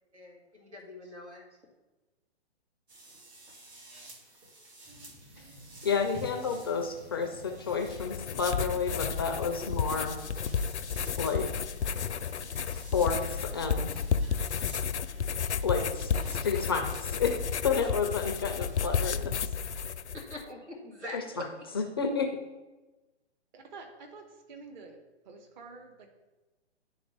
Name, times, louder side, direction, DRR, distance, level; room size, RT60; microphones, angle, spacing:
voice 1, 0.1-1.4 20.1-21.5, left 1 dB, 90° right, 1 dB, 2.1 m, -43 dB
sound 1, 2.9-18.9, right 2 dB, 75° right, 1.8 m, -54 dB
sound 2, 4.9-14.4, left 1 dB, 25° right, 1.5 m, -50 dB
voice 2, 5.8-10.1 11.2-11.5 12.7-13.9 15.6-17.3 17.6-19.3 21.1-21.4 21.7-22.3, left 5 dB, 25° left, 4 dB, 0.3 m, -30 dB
sound 3, 7.7-20.4, left 6 dB, 85° left, 0.5 m, -32 dB
voice 3, 23.5-26.1, right 4 dB, 45° right, 3 dB, 1.1 m, -48 dB
10.5 x 3.7 x 3.4 m, 1.1 s
figure-of-eight pair, 130°, 34 cm